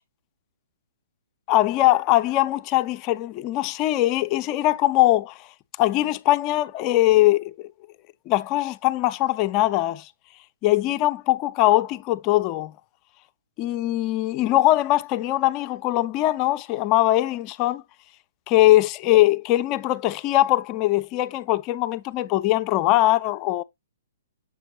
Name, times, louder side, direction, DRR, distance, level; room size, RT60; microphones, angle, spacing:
voice 1, 1.5-5.4 5.8-7.7 8.3-10.1 10.6-12.7 13.6-17.8 18.5-23.6, left 16 dB, 30° left, 0.4 m, -21 dB
7.2 x 5.8 x 2.3 m
figure-of-eight pair, 120°, 0 cm